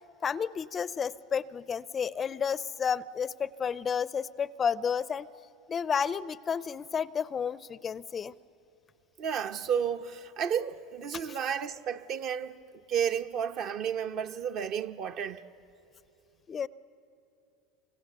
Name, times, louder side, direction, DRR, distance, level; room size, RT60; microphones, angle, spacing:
voice 1, 0.2-5.3 5.7-8.3 16.5-16.7, left 7 dB, 30° left, 0.5 m, -31 dB
voice 2, 9.2-12.6 12.9-15.4, right 8 dB, 50° right, 0.9 m, -32 dB
28.5 x 25.0 x 6.8 m
supercardioid pair, 105°, 0 cm